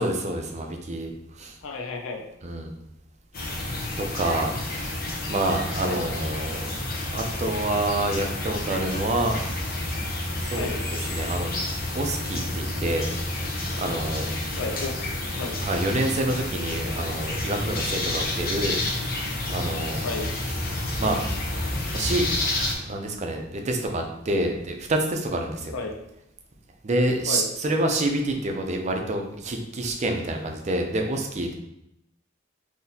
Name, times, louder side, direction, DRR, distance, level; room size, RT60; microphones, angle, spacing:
voice 1, 0.0-1.6 2.4-2.7 3.7-6.8 7.1-9.4 10.4-11.5 11.9-13.1 13.8-14.3 15.6-20.6 21.0-21.2 21.9-22.3 22.8-25.8 26.8-31.5, right 1 dB, 35° right, 3 dB, 0.5 m, -28 dB
voice 2, 1.6-2.2 5.8-6.0 10.5-10.8 14.6-14.9 15.2-15.6 20.0-20.3 25.7-25.9 27.3-27.4, left 4 dB, 85° left, 3 dB, 0.5 m, -32 dB
sound 1, 3.3-22.7, left 1 dB, 50° left, 0.8 m, -30 dB
4.0 x 2.8 x 2.7 m, 0.82 s
head